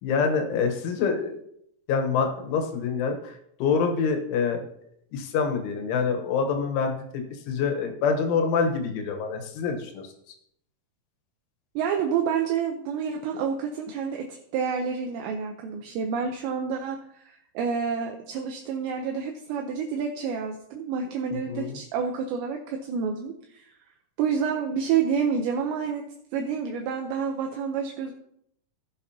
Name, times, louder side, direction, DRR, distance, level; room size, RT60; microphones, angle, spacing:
voice 1, 0.0-1.4 1.9-4.7 5.1-10.1 21.3-21.8, left 5 dB, 80° left, 5 dB, 3.6 m, -26 dB
voice 2, 11.8-23.7 24.2-26.0 26.3-28.1, right 6 dB, 75° right, 3 dB, 2.8 m, -29 dB
16.5 x 7.9 x 2.8 m, 0.72 s
omnidirectional pair, 5.5 m